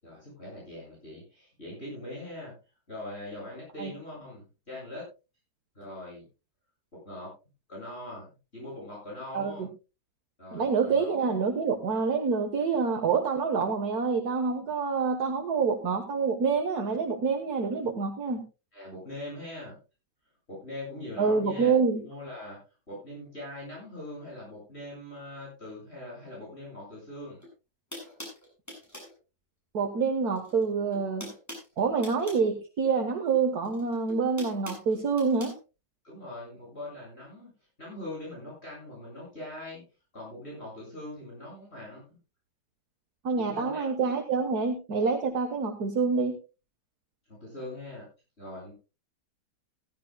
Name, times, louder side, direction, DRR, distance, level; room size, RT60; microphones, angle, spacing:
voice 1, 0.0-2.5 2.9-5.1 5.7-6.3 6.9-7.3 7.7-9.7 10.4-11.2 18.7-19.8 20.5-22.6 22.9-27.4 36.0-37.5 37.8-39.8 40.1-42.2 43.4-43.9 47.3-48.1 48.4-48.7, left 1 dB, 35° left, -5 dB, 8.1 m, -42 dB
voice 2, 9.3-9.7 10.5-18.4 21.2-22.0 29.7-31.3 31.8-35.5 43.2-46.4, right 5 dB, 65° right, 4 dB, 1.9 m, -27 dB
sound 1, 27.4-27.5 27.9-29.2 30.3-30.6 30.9-32.5 33.6-35.6, equal, 10° left, 6.4 m, -43 dB
16.5 x 15.5 x 2.3 m, 0.30 s
omnidirectional pair, 1.8 m